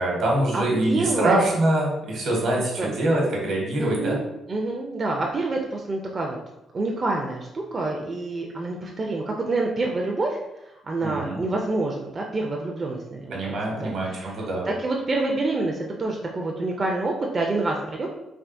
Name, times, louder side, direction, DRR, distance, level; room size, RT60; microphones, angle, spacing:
voice 1, 0.0-4.2 11.0-11.4 13.3-14.7, right 1 dB, 70° right, -2 dB, 1.0 m, -24 dB
voice 2, 0.5-1.4 2.5-3.0 3.8-6.4 6.7-18.1, right 2 dB, 35° right, 0 dB, 0.4 m, -27 dB
3.4 x 2.4 x 2.5 m, 0.90 s
cardioid pair, 90°, 0 cm